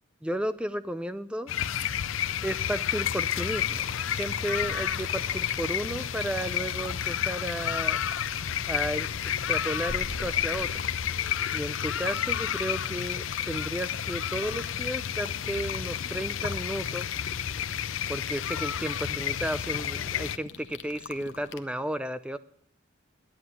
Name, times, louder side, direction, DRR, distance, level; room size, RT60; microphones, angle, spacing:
voice 1, 0.2-1.5 2.4-3.8 4.1-8.0 8.7-9.1 9.5-10.7 11.5-17.1 18.1-22.4, right 1 dB, 5° right, 13 dB, 0.4 m, -33 dB
sound 1, 1.5-20.4, left 9 dB, 85° left, 0.5 m, -31 dB
sound 2, 2.9-21.6, left 6 dB, 65° left, 0.9 m, -44 dB
sound 3, 3.4-11.3, right 1 dB, 90° right, 1.5 m, -47 dB
10.0 x 9.7 x 9.4 m, 0.65 s
head